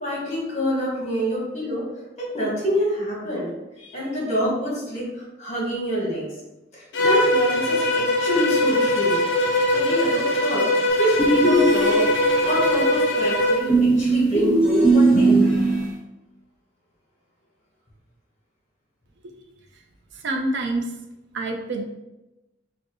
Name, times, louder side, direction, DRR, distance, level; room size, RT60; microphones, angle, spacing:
voice 1, 0.0-1.8 2.2-3.5 3.8-5.1 5.4-6.3 6.7-9.2 9.7-10.7 11.0-12.1 12.4-15.4, equal, 35° left, -4 dB, 1.2 m, -26 dB
Bowed string instrument, 6.9-13.7, left 1 dB, 65° left, 0.5 m, -21 dB
sound 1, 11.2-12.5 13.7-15.9, right 2 dB, 5° right, 0.9 m, -19 dB
voice 2, 20.1-20.9 21.3-21.8, right 2 dB, 65° right, 3 dB, 0.5 m, -26 dB
4.5 x 2.0 x 2.9 m, 0.99 s
head